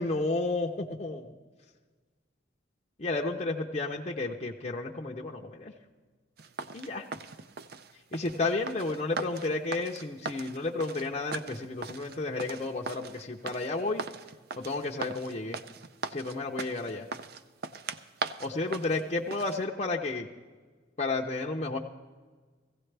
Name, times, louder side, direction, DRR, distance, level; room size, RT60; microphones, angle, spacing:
voice 1, 0.0-1.3 3.0-5.7 6.7-7.1 8.1-14.0 14.6-15.6 16.1-17.1 18.4-20.3 21.0-21.8, left 3 dB, 35° left, -1 dB, 0.6 m, -32 dB
sound 1, 6.4-19.6, right 4 dB, 50° right, 0.4 m, -40 dB
16.0 x 16.0 x 3.3 m, 1.4 s
head